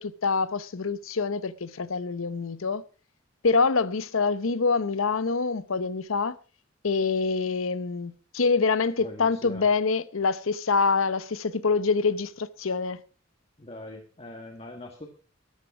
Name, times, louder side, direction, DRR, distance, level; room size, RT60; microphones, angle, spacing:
voice 1, 0.0-2.8 3.4-6.3 6.8-13.0, left 4 dB, 75° left, 0.8 m, -25 dB
voice 2, 9.0-9.7 13.6-15.1, left 1 dB, 30° left, 1.5 m, -42 dB
13.5 x 11.0 x 4.8 m
head